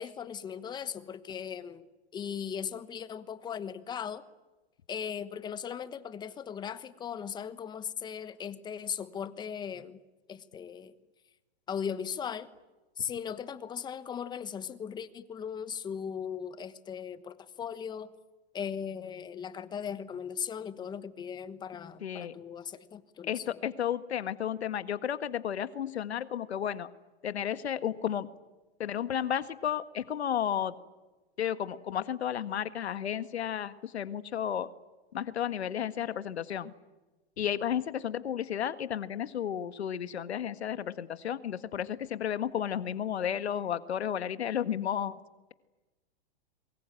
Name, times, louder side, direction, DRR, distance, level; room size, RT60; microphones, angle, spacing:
voice 1, 0.0-1.9 2.1-4.2 4.9-10.0 10.3-10.9 11.7-12.5 13.0-18.1 18.5-23.6, left 7 dB, 15° left, 13 dB, 1.2 m, -38 dB
voice 2, 22.0-22.3 23.3-26.9 27.2-28.3 28.8-30.7 31.4-34.7 35.1-36.7 37.4-45.2, left 9 dB, 85° left, 12 dB, 1.7 m, -32 dB
26.5 x 23.0 x 9.1 m, 1.1 s
hypercardioid pair, 145°, 32 cm